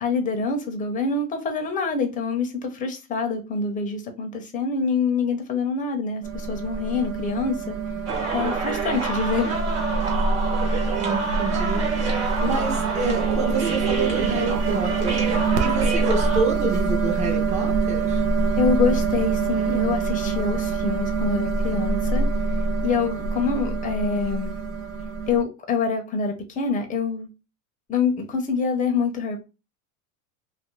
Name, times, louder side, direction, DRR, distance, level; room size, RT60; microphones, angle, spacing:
voice 1, 0.0-7.8 8.3-9.5 18.6-22.3 22.8-24.6 25.3-27.3 27.9-29.4, left 4 dB, 20° left, 0.7 m, -25 dB
sound 1, 6.2-25.4, right 4 dB, 65° right, 0.7 m, -25 dB
sound 2, 8.1-16.4, right 4 dB, 35° right, 1.3 m, -28 dB
voice 2, 10.7-12.0 12.4-18.2, right 3 dB, 15° right, 0.8 m, -28 dB
2.8 x 2.7 x 3.0 m
supercardioid pair, 135°, 44 cm